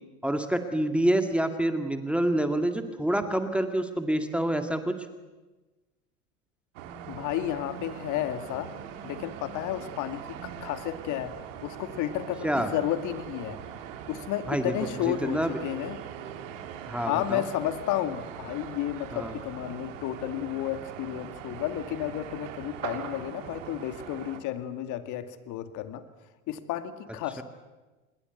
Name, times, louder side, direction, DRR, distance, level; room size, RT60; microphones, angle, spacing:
voice 1, 0.2-4.9 12.4-12.7 14.5-14.7 15.0-15.6 16.9-17.4 19.1-19.3 27.4-27.5, right 1 dB, 5° right, 7 dB, 2.0 m, -27 dB
sound 1, 6.7-24.4, right 9 dB, 65° right, 3.0 m, -41 dB
voice 2, 7.1-8.7 9.0-11.3 11.6-13.6 14.1-16.0 17.1-26.0 26.5-27.4, left 12 dB, 45° left, 10 dB, 2.3 m, -32 dB
27.0 x 21.0 x 8.2 m, 1.2 s
hypercardioid pair, 85°, 42 cm